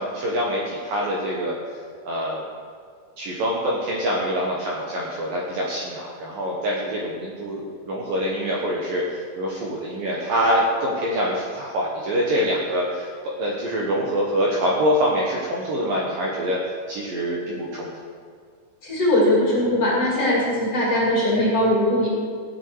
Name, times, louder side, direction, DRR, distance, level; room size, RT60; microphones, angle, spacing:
voice 1, 0.0-1.6 2.1-2.4 3.2-16.6 16.9-17.9, equal, 65° right, -4 dB, 2.5 m, -25 dB
voice 2, 18.8-22.1, left 1 dB, 35° left, -6 dB, 3.5 m, -20 dB
17.0 x 9.1 x 4.7 m, 2.1 s
omnidirectional pair, 5.5 m